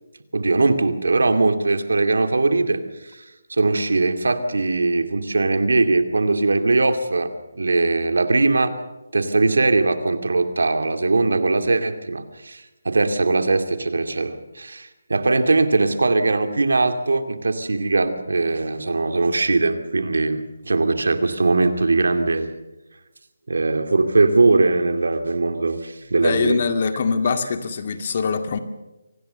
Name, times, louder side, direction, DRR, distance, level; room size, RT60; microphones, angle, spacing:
voice 1, 0.3-2.8 3.1-3.2 3.5-8.7 9.1-22.5 23.5-26.6, right 3 dB, 80° right, 8 dB, 2.4 m, -20 dB
voice 2, 26.2-28.6, left 5 dB, 45° left, 8 dB, 2.1 m, -23 dB
25.0 x 18.5 x 6.8 m, 1.0 s
figure-of-eight pair, 160°, 0 cm